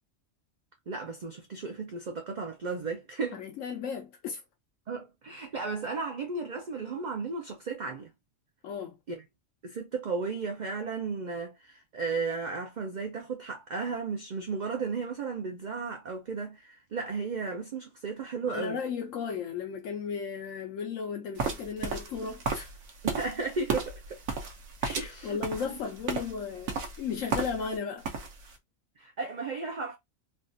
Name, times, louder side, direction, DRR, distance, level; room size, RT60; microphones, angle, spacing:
voice 1, 0.9-3.4 4.9-8.1 9.1-9.2 9.6-18.8 23.0-24.2 25.0-25.6 29.0-30.0, right 4 dB, 50° right, 0.6 m, -34 dB
voice 2, 3.3-4.4 8.6-9.0 18.5-22.7 24.8-28.0, left 6 dB, 75° left, 1.0 m, -35 dB
sound 1, 21.4-27.8 28.0-28.5, right 5 dB, 85° right, 1.2 m, -34 dB
3.5 x 2.4 x 2.6 m
omnidirectional pair, 1.4 m